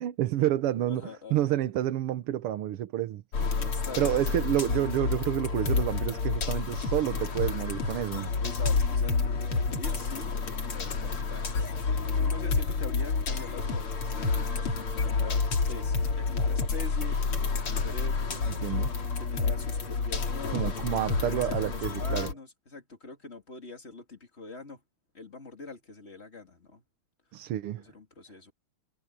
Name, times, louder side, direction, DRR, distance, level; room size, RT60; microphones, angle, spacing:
voice 1, 0.0-3.2 4.0-8.3 18.5-18.9 20.5-22.3 27.3-27.8, right 12 dB, 90° right, 1.9 m, -29 dB
voice 2, 0.9-1.5 3.4-4.3 7.9-8.0 8.4-10.3 10.6-18.5 19.2-24.8 25.1-26.8 27.8-28.5, left 3 dB, 30° left, 3.0 m, -44 dB
sound 1, 3.3-22.3, left 4 dB, 75° left, 3.6 m, -29 dB
omnidirectional pair, 2.4 m